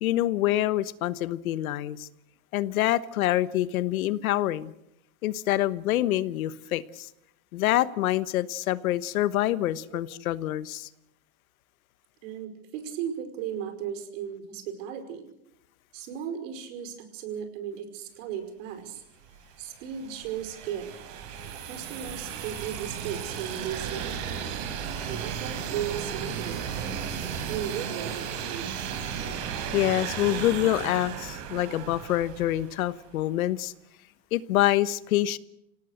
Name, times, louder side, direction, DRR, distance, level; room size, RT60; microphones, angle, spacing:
voice 1, 0.0-2.1 2.5-4.7 5.2-7.1 7.5-10.9 29.7-33.7 34.3-35.4, left 14 dB, 85° left, 1.2 m, -26 dB
voice 2, 12.2-15.2 15.9-19.0 19.6-21.0 21.7-24.4 25.1-26.7 27.5-28.7, right 9 dB, 60° right, 5.3 m, -36 dB
sound 1, 19.3-33.0, right 8 dB, 45° right, 4.3 m, -35 dB
27.0 x 18.0 x 6.6 m
supercardioid pair, 150°, 41 cm